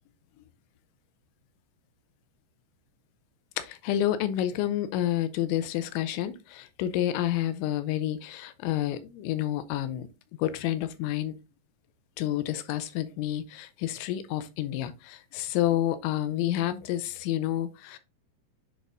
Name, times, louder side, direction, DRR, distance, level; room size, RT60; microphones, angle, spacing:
voice 1, 3.6-10.1 10.4-11.3 12.2-18.0, left 12 dB, 85° left, 2.9 m, -29 dB
10.0 x 4.2 x 2.5 m
omnidirectional pair, 5.3 m